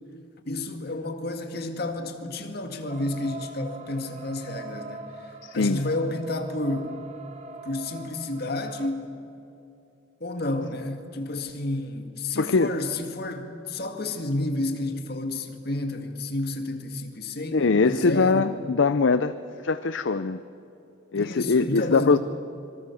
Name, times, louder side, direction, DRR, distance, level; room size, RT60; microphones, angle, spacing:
voice 1, 0.5-7.0 7.6-9.1 10.2-18.5 21.1-22.2, left 2 dB, 50° left, 2.1 m, -31 dB
sound 1, 2.9-8.9, right 3 dB, 35° right, 1.4 m, -42 dB
voice 2, 5.4-5.8 12.4-12.7 17.5-19.3 19.6-20.4 21.1-22.2, left 4 dB, 65° left, 0.6 m, -22 dB
25.5 x 23.5 x 7.1 m
head